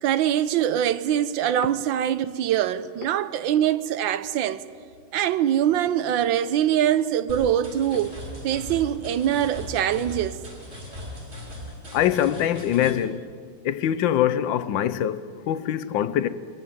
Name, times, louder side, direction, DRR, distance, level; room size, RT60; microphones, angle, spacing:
voice 1, 0.0-4.6 5.1-8.2 8.4-10.4, right 10 dB, 75° right, 1.4 m, -23 dB
sound 1, 7.3-12.9, left 1 dB, 30° right, 5.0 m, -39 dB
voice 2, 11.9-13.2 13.6-16.3, left 10 dB, 75° left, 1.4 m, -23 dB
23.0 x 14.5 x 9.6 m
omnidirectional pair, 2.1 m